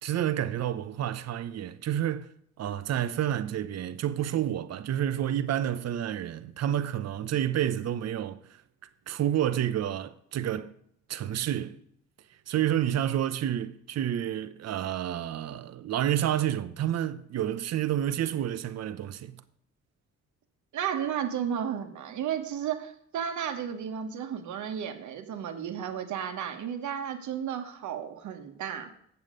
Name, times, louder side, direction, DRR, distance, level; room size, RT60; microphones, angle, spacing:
voice 1, 0.0-2.3 2.6-8.6 9.1-10.7 11.1-11.8 12.5-19.4, right 11 dB, 55° right, 0.7 m, -29 dB
voice 2, 20.7-28.9, right 8 dB, 75° right, 1.2 m, -33 dB
8.2 x 7.3 x 5.1 m
cardioid pair, 90°, 30 cm